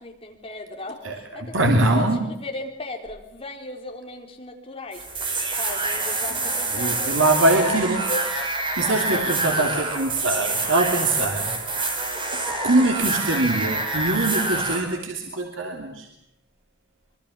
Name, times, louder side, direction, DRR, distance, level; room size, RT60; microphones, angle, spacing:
voice 1, 0.0-5.3 5.5-7.3 7.5-7.7 8.1-8.3 8.8-9.8, left 2 dB, 30° left, 2 dB, 4.3 m, -36 dB
voice 2, 1.0-2.2 6.7-8.0 8.8-12.0 12.3-16.1, right 2 dB, 90° right, 3 dB, 3.0 m, -23 dB
sound 1, 4.9-14.8, right 2 dB, 25° right, 5.0 m, -26 dB
25.0 x 24.0 x 7.3 m, 0.81 s
head